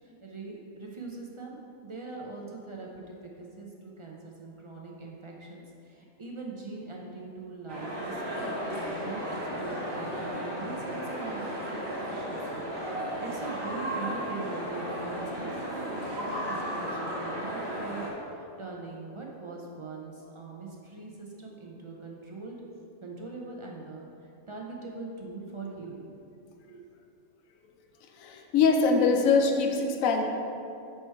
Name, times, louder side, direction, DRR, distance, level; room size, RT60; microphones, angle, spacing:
voice 1, 0.0-1.6 1.8-22.6 23.0-26.2 26.4-26.8, right 3 dB, 50° right, -1 dB, 0.3 m, -42 dB
sound 1, 7.7-18.1, equal, 20° right, 0.9 m, -34 dB
voice 2, 28.2-30.2, left 4 dB, 80° left, 3 dB, 1.0 m, -23 dB
5.8 x 4.5 x 4.5 m, 2.6 s
omnidirectional pair, 1.4 m